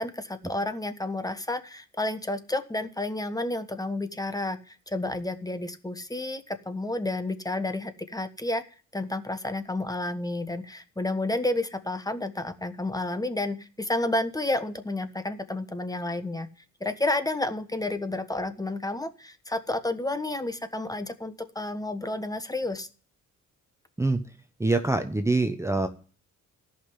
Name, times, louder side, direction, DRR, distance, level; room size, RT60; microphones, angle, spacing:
voice 1, 0.0-8.6 8.9-16.5 16.8-22.9, left 2 dB, 10° left, 10 dB, 1.3 m, -31 dB
voice 2, 24.6-25.9, right 2 dB, 10° right, 7 dB, 1.0 m, -24 dB
13.5 x 5.9 x 9.7 m, 0.39 s
cardioid pair, 90°, 30 cm